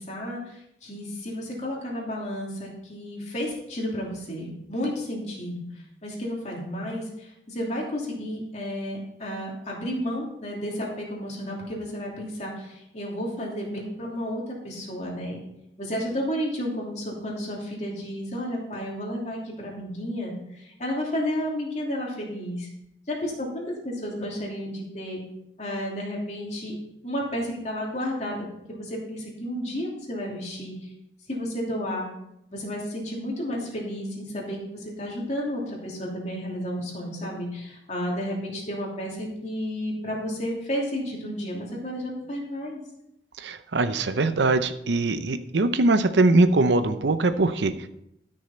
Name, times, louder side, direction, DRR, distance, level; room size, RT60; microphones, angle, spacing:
voice 1, 0.0-5.6 6.0-15.4 15.8-22.7 23.1-25.2 25.6-26.7 27.0-30.9 31.3-32.1 32.5-42.8, equal, 40° left, -3 dB, 2.9 m, -32 dB
voice 2, 43.4-47.7, right 2 dB, 85° right, 11 dB, 0.6 m, -22 dB
12.5 x 6.5 x 4.4 m, 0.81 s
head